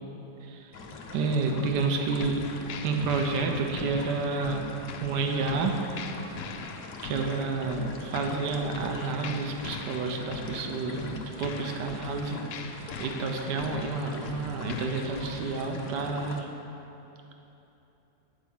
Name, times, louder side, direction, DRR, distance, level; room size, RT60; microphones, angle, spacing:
sound 1, 0.7-16.4, left 3 dB, 55° left, 0.9 m, -43 dB
voice 1, 1.1-2.4 2.8-4.7 5.0-5.8 7.0-16.5, right 4 dB, 75° right, 3 dB, 1.4 m, -30 dB
sound 2, 2.2-15.6, left 5 dB, 80° left, 1.3 m, -42 dB
8.9 x 4.6 x 7.1 m, 3.0 s
omnidirectional pair, 1.9 m